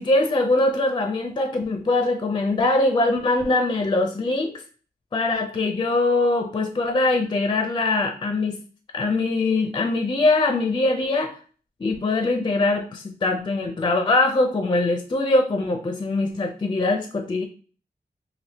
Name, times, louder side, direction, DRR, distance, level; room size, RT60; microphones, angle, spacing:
voice 1, 0.0-4.6 5.1-8.6 8.9-11.4 11.8-17.4, left 2 dB, 25° left, 5 dB, 0.4 m, -22 dB
3.4 x 2.5 x 2.8 m, 0.40 s
wide cardioid pair, 145°, 17 cm